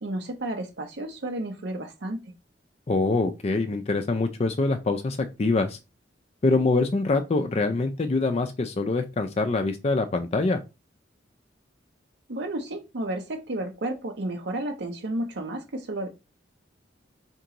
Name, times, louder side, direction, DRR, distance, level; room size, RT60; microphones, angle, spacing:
voice 1, 0.0-2.2 12.3-16.1, right 1 dB, 65° right, 0.7 m, -32 dB
voice 2, 2.9-5.8 6.4-10.6, left 3 dB, 35° left, 0.4 m, -24 dB
4.4 x 2.9 x 3.8 m
head